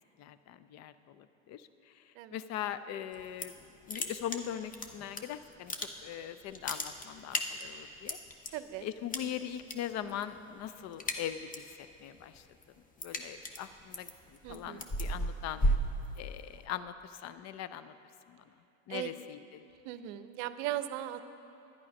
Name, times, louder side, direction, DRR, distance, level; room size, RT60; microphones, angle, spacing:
voice 1, 0.2-3.5 3.8-8.2 8.4-8.5 8.8-12.5 13.0-15.7 16.2-17.9 18.3-19.6, left 10 dB, 45° left, 13 dB, 0.6 m, -41 dB
sound 1, 3.1-3.6 3.9-5.2 5.5-6.2 6.5-8.5 9.1-9.7 10.0-10.4 10.7-11.7 12.1-16.6, equal, 20° left, 0.9 m, -34 dB
voice 2, 8.5-8.9 14.4-14.8 18.9-19.1 19.8-21.2, right 13 dB, 60° right, 12 dB, 0.7 m, -38 dB
11.0 x 9.8 x 5.3 m, 2.8 s
hypercardioid pair, 85°, 39 cm